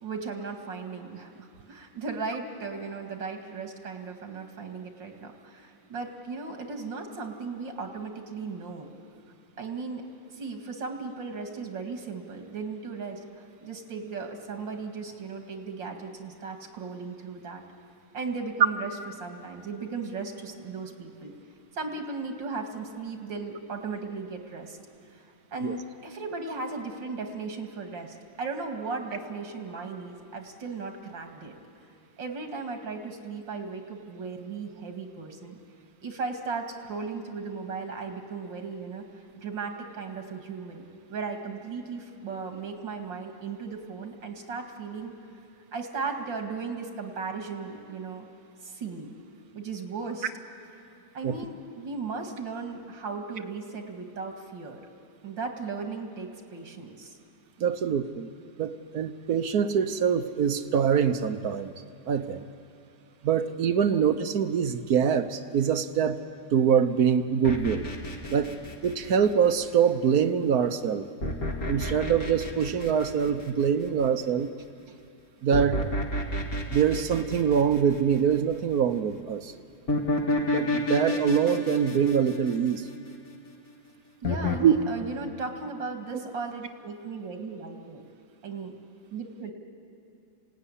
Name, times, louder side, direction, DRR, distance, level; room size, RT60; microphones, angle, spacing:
voice 1, 0.0-8.9 9.6-10.0 10.3-17.6 18.1-21.3 21.7-24.8 25.2-31.5 32.2-35.6 36.0-45.1 45.7-48.2 48.6-49.1 49.5-50.3 51.1-54.8 55.2-57.2 74.9-75.0 84.2-88.0 88.4-88.7 89.1-89.5, right 4 dB, 90° right, 3 dB, 2.8 m, -36 dB
voice 2, 57.6-58.3 58.6-61.7 62.1-62.5 63.2-66.2 66.5-67.9 68.3-68.5 68.8-71.1 71.7-74.5 75.4-75.9 76.7-79.5 80.5-82.9 84.6-84.7, right 7 dB, 60° right, 10 dB, 1.3 m, -24 dB
sound 1, 67.4-69.6 71.2-73.9 75.5-78.4 79.9-83.3 84.2-84.6, left 1 dB, 50° left, 2.7 m, -30 dB
26.5 x 17.5 x 9.9 m, 2.5 s
omnidirectional pair, 2.0 m